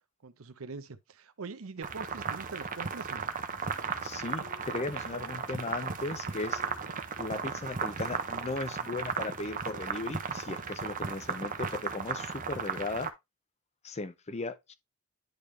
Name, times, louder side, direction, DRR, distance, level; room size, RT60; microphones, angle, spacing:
voice 1, 0.2-3.3 8.0-8.2, right 4 dB, 70° right, 0.7 m, -43 dB
sound 1, 1.8-13.1, right 6 dB, 40° right, 0.7 m, -36 dB
Wind instrument woodwind instrument, 3.5-8.3, left 2 dB, 85° left, 1.9 m, -56 dB
voice 2, 4.0-6.6 7.2-13.1 13.8-14.7, left 3 dB, 30° left, 0.6 m, -37 dB
10.5 x 3.6 x 3.2 m
head